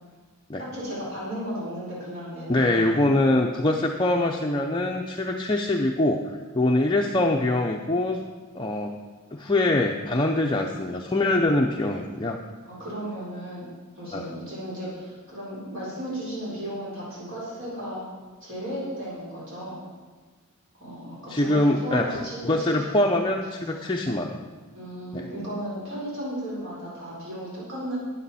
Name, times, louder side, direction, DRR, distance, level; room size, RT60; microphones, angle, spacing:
voice 1, 0.6-3.1 12.6-13.7 13.9-18.1 18.4-19.8 20.8-23.2 23.5-23.6 24.7-28.0, equal, 60° right, -7 dB, 4.2 m, -35 dB
voice 2, 2.5-8.2 8.5-8.9 9.3-12.4 14.1-14.2 21.3-24.4 25.1-25.3, left 1 dB, 20° left, 1 dB, 0.5 m, -24 dB
13.0 x 9.3 x 4.2 m, 1.4 s
head